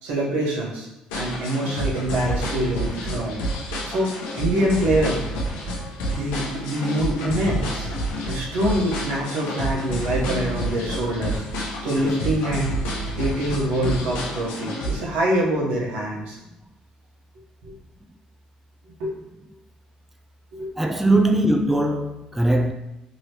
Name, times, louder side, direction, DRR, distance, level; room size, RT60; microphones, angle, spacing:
voice 1, 0.0-0.9 1.1-3.4 3.8-4.1 4.4-5.2 6.1-7.9 8.2-11.4 11.8-12.7 13.2-16.4 17.6-17.7 19.0-19.1 20.5-20.7, right 1 dB, 80° right, 0.9 m, -25 dB
sound 1, 1.1-15.0, equal, 85° left, 0.7 m, -29 dB
voice 2, 20.8-22.7, right 1 dB, 10° right, 0.3 m, -20 dB
3.0 x 2.8 x 2.8 m
supercardioid pair, 75°, 3 cm